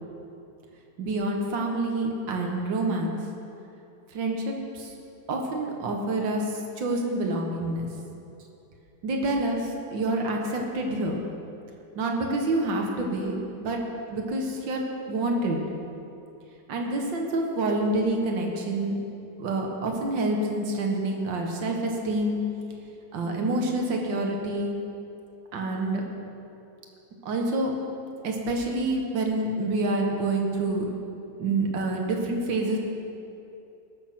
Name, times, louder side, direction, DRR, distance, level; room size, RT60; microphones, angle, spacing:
voice 1, 1.0-3.2 4.1-4.9 5.3-6.4 6.8-7.9 9.0-11.2 12.0-13.8 14.1-14.8 15.1-15.6 16.7-19.0 19.4-22.4 23.1-24.7 25.5-26.0 27.3-27.7 28.2-30.9 31.4-32.8, right 2 dB, 60° right, 1 dB, 2.2 m, -27 dB
20.0 x 7.1 x 6.0 m, 2.8 s
omnidirectional pair, 2.4 m